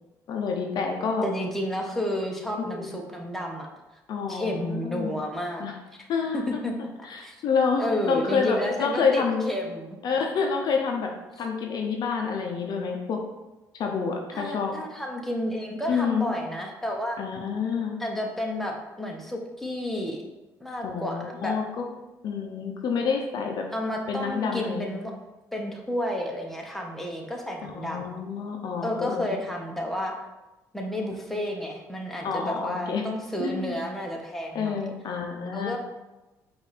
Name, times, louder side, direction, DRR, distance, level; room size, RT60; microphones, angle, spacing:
voice 1, 0.3-1.3 2.6-2.9 4.1-5.2 5.6-5.7 6.1-6.6 7.0-9.5 10.0-11.1 11.4-13.2 13.8-14.7 15.9-16.3 17.2-18.0 20.8-21.8 22.2-23.6 24.1-24.9 27.6-29.4 31.3-31.4 32.2-33.0 33.4-33.8 34.5-35.8, left 5 dB, 60° left, 2 dB, 0.6 m, -28 dB
voice 2, 1.2-3.7 4.3-5.7 6.0-6.1 6.3-7.4 7.8-10.0 14.3-17.2 18.0-20.2 20.6-21.6 23.7-25.1 25.5-28.2 28.8-30.1 30.7-34.8 35.5-35.8, equal, 5° left, 0 dB, 1.0 m, -31 dB
4.8 x 2.6 x 4.1 m, 1.0 s
supercardioid pair, 65°, 8 cm